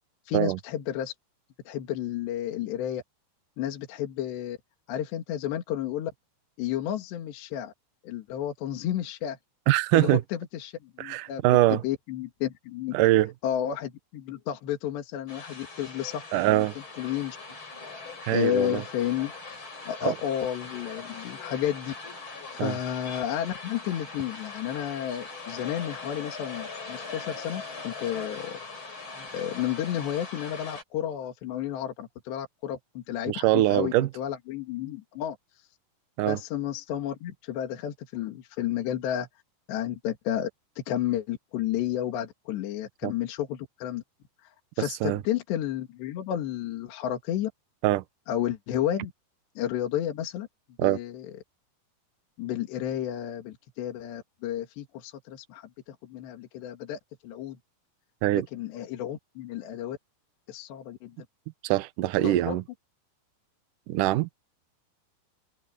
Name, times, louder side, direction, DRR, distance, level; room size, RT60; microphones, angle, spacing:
voice 1, 0.3-1.1 1.7-3.0 3.6-4.6 4.9-6.1 6.6-7.7 8.0-9.4 9.9-11.4 11.7-13.0 13.4-16.7 17.0-17.4 18.3-19.3 19.9-21.9 22.5-28.6 29.2-35.4 36.2-39.3 39.7-40.5 40.8-44.0 44.4-44.5 44.8-47.5 48.3-49.1 49.6-50.5 50.8-51.3 52.4-57.6 58.3-60.0 60.5-61.2 62.2-62.6, left 11 dB, 75° left, 4.1 m, -32 dB
voice 2, 9.7-10.2 11.0-11.8 12.9-13.3 16.3-16.7 18.2-18.8 20.0-20.2 22.6-22.8 33.3-34.1 36.2-36.4 43.0-43.1 45.0-45.2 47.8-48.0 50.8-51.0 58.2-58.5 61.6-62.6 63.9-64.3, right 15 dB, 75° right, 1.9 m, -23 dB
sound 1, 15.3-30.8, left 4 dB, 25° left, 6.1 m, -41 dB
omnidirectional pair, 5.1 m